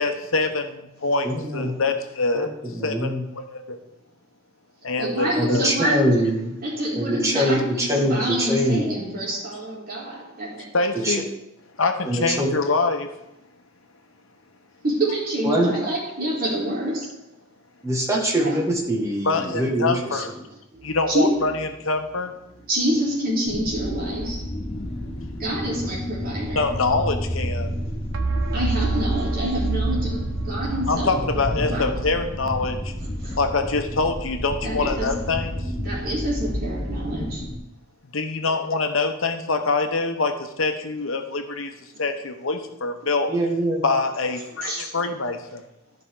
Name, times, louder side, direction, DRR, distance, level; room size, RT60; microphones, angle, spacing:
voice 1, 0.0-2.5 2.8-3.8 4.8-5.7 10.7-11.3 11.8-13.1 19.2-20.3 20.8-22.3 26.5-27.7 30.9-32.9 33.4-35.6 38.1-41.7 42.0-43.3 43.8-45.6, left 3 dB, 80° left, 1.0 m, -25 dB
voice 2, 1.2-1.7 2.3-2.5 2.7-3.2 5.4-6.5 6.9-9.0 11.0-11.2 12.1-12.5 15.4-15.7 17.8-20.2 43.3-43.8, right 1 dB, 15° right, 1.9 m, -23 dB
voice 3, 5.0-6.2 6.6-11.1 14.8-17.2 18.4-18.6 20.8-21.5 22.7-24.4 25.4-26.7 28.5-32.0 33.2-33.4 34.6-35.1 35.8-37.4 44.6-44.9, right 1 dB, 50° right, 3.6 m, -27 dB
sound 1, 20.8-21.7 28.1-31.2, right 3 dB, 85° right, 0.8 m, -28 dB
sound 2, 23.5-37.6, equal, 30° left, 1.2 m, -30 dB
13.5 x 5.4 x 3.8 m
head